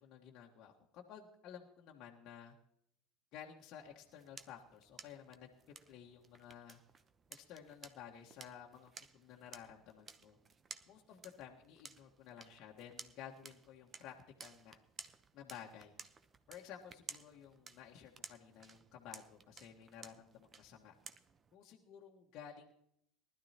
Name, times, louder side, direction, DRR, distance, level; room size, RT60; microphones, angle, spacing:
voice 1, 0.0-2.6 3.3-5.5 5.9-6.8 7.3-10.4 10.9-14.8 15.3-15.9 16.5-20.9 21.5-22.7, left 9 dB, 50° left, -1 dB, 1.5 m, -54 dB
sound 1, 3.8-21.5, right 5 dB, 30° right, 0.8 m, -56 dB
19.5 x 12.0 x 2.9 m, 0.72 s
hypercardioid pair, 75°, 0 cm